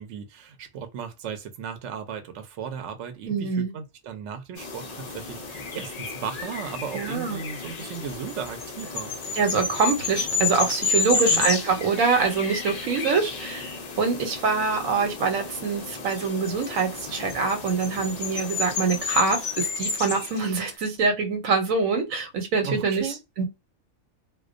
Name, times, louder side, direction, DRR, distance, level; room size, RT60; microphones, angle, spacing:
voice 1, 0.0-9.1 11.1-11.5 22.6-23.2, right 7 dB, 70° right, 0.9 m, -36 dB
voice 2, 3.3-3.7 6.9-7.4 9.3-13.7 14.0-23.5, right 4 dB, 85° right, 1.1 m, -25 dB
sound 1, 4.6-20.7, left 4 dB, 75° left, 0.3 m, -31 dB
2.3 x 2.2 x 2.4 m
omnidirectional pair, 1.4 m